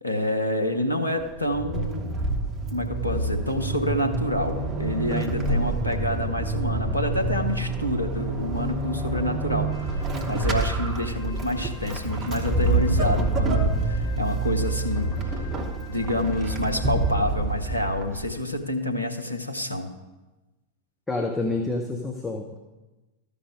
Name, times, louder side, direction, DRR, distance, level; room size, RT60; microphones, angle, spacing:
voice 1, 0.0-2.1 2.7-15.1 15.9-19.9, left 1 dB, 85° left, 4 dB, 0.8 m, -28 dB
Vehicle / Accelerating revving vroom / Squeak, 1.2-18.4, right 2 dB, 25° right, 1.1 m, -27 dB
Wind instrument woodwind instrument, 9.6-17.3, left 2 dB, 40° left, 1.4 m, -47 dB
voice 2, 21.1-22.6, left 2 dB, 10° left, 2 dB, 0.8 m, -28 dB
13.0 x 5.2 x 4.8 m, 1.1 s
figure-of-eight pair, 90°, 0 cm